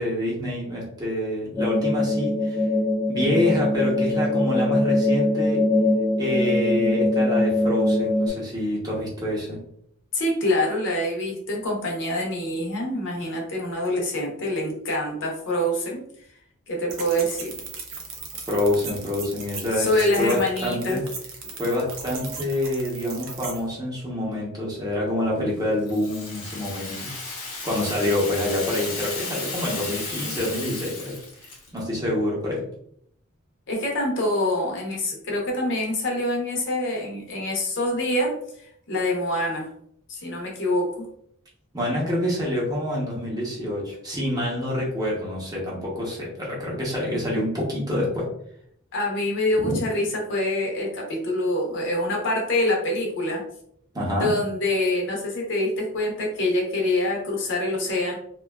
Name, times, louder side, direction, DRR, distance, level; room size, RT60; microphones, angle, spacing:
voice 1, 0.0-2.6 3.1-5.6 6.2-9.6 18.5-21.0 21.6-27.1 27.6-32.6 41.7-48.2 49.6-49.8 53.9-54.3, left 1 dB, 20° right, -4 dB, 0.7 m, -27 dB
sound 1, 1.6-8.3, left 2 dB, 10° left, 0.4 m, -22 dB
voice 2, 10.1-16.0 16.7-17.5 19.8-21.0 33.7-38.3 38.9-39.7 40.1-41.1 48.9-53.4 54.2-58.2, left 1 dB, 55° left, -1 dB, 0.7 m, -25 dB
sound 2, 16.9-23.6, right 5 dB, 75° right, 0.6 m, -37 dB
Rattle (instrument), 25.8-31.8, left 3 dB, 85° left, 0.8 m, -34 dB
2.6 x 2.2 x 2.2 m, 0.68 s
head